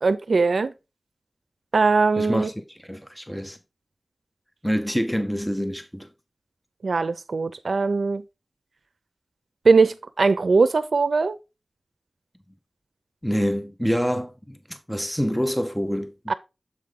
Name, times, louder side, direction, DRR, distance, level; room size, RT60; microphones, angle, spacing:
voice 1, 0.0-0.7 1.7-2.5 6.8-8.2 9.6-11.4 16.3-16.4, right 4 dB, 75° right, 0.5 m, -20 dB
voice 2, 2.2-3.6 4.6-6.1 13.2-16.3, equal, 5° left, 0.7 m, -26 dB
7.3 x 4.8 x 3.7 m
wide cardioid pair, 85°, 0 cm